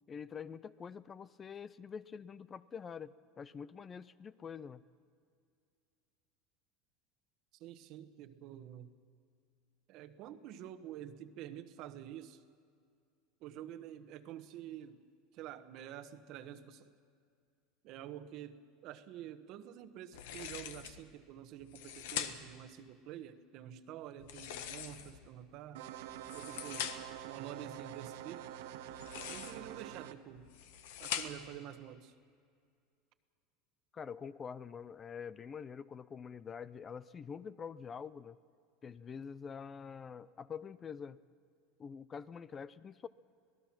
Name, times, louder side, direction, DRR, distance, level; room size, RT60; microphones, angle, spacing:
voice 1, 0.1-4.8 33.9-38.4 38.8-41.2 41.8-43.1, left 6 dB, 25° left, 17 dB, 0.5 m, -46 dB
voice 2, 7.6-8.9 9.9-12.4 13.4-15.0 15.3-16.9 17.8-25.8 26.3-27.0 27.2-28.5 29.3-30.5 31.0-32.1, right 11 dB, 55° right, 11 dB, 1.2 m, -48 dB
sound 1, 20.1-21.0 21.6-22.6 24.2-25.3 26.1-27.2 28.9-29.7 30.4-31.6, left 9 dB, 80° left, 1.4 m, -43 dB
sound 2, 25.7-30.1, right 12 dB, 85° right, 1.1 m, -46 dB
26.0 x 18.0 x 6.0 m, 2.3 s
supercardioid pair, 135°, 0 cm